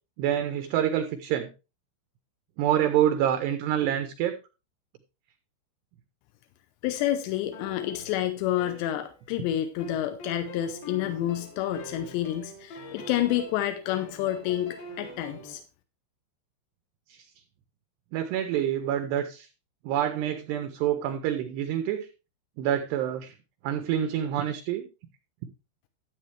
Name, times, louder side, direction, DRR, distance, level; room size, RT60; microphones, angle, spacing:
voice 1, 0.2-1.5 2.6-4.3 17.1-17.2 18.1-19.5 19.8-22.1 22.6-23.3 23.6-24.9, right 10 dB, 85° right, 8 dB, 2.4 m, -27 dB
voice 2, 6.8-15.6, left 12 dB, 80° left, 8 dB, 2.6 m, -29 dB
sound 1, 7.5-9.4 9.8-15.6, equal, 55° left, 3.3 m, -44 dB
12.0 x 8.1 x 3.2 m, 0.30 s
omnidirectional pair, 5.8 m